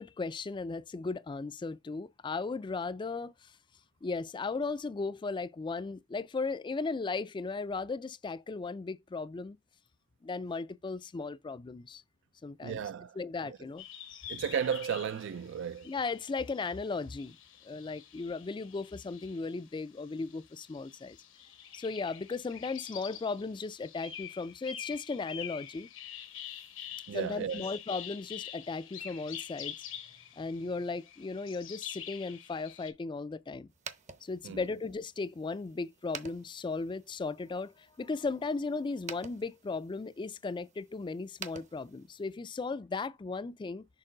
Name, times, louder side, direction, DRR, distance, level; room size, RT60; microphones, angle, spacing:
voice 1, 0.0-3.5 4.0-9.6 10.2-12.0 12.4-12.8 13.2-13.9 15.8-17.4 17.6-21.2 21.7-25.9 27.1-29.7 30.4-33.7 34.2-43.9, left 4 dB, 25° left, 0.3 m, -36 dB
voice 2, 12.6-13.6 14.3-15.9 27.1-27.7 34.4-34.7, right 7 dB, 65° right, 0.3 m, -34 dB
sound 1, 13.8-19.6 20.0-32.9, left 9 dB, 75° left, 1.2 m, -46 dB
sound 2, 33.7-42.4, right 6 dB, 40° right, 0.7 m, -50 dB
6.6 x 3.8 x 3.8 m
head